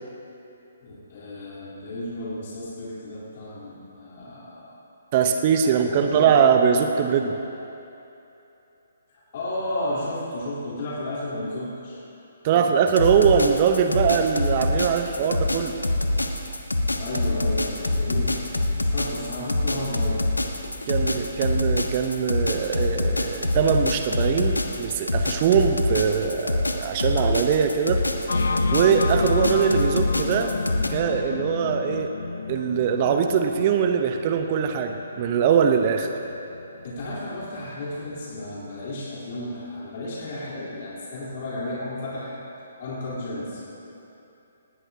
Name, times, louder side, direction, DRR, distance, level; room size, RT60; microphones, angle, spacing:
voice 1, 0.8-4.8 5.8-6.3 9.1-12.0 12.5-12.8 17.0-18.4 18.8-20.3 20.9-21.1 36.8-42.4 42.8-43.6, left 1 dB, 45° left, -8 dB, 3.6 m, -33 dB
voice 2, 5.1-7.4 12.4-15.8 20.9-28.0 28.7-30.5 30.9-32.1 32.5-36.1, right 7 dB, 35° right, 6 dB, 0.8 m, -22 dB
sound 1, 12.9-30.9, left 2 dB, 85° left, 1.2 m, -25 dB
sound 2, 28.3-37.9, left 4 dB, 65° left, 0.7 m, -31 dB
20.0 x 17.5 x 2.8 m, 2.9 s
figure-of-eight pair, 135°, 0 cm